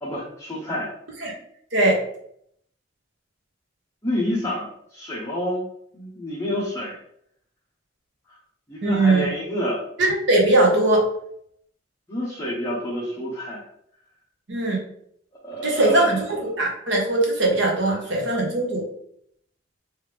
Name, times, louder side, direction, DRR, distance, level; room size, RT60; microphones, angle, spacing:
voice 1, 0.0-0.9 4.0-5.6 5.9-6.9 8.3-8.4 8.7-9.8 12.1-13.7 15.4-16.2 17.8-17.9, equal, 15° left, -8 dB, 0.8 m, -28 dB
voice 2, 8.8-9.3 10.3-11.0 14.5-14.8 15.6-18.8, right 2 dB, 70° right, -1 dB, 1.1 m, -20 dB
3.5 x 3.2 x 3.3 m, 0.70 s
head